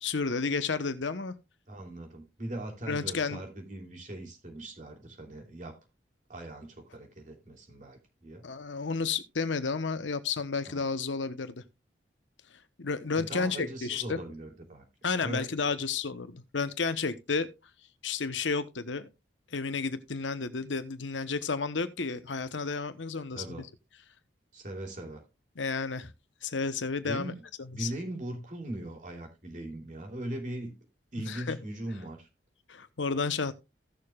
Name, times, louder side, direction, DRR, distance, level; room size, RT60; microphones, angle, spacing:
voice 1, 0.0-1.4 2.9-3.4 8.4-11.6 12.8-14.2 15.0-17.5 18.0-19.1 19.5-23.7 25.6-26.1 26.4-27.3 27.6-27.9 31.3-31.6 32.7-33.5, left 4 dB, 90° left, 1.0 m, -31 dB
voice 2, 1.7-5.8 6.3-8.4 10.7-10.8 13.1-14.8 15.2-15.5 23.3-23.6 24.5-25.2 27.0-27.4 27.7-30.7 31.1-32.3, right 1 dB, 45° right, 3.1 m, -40 dB
16.5 x 6.7 x 2.4 m
head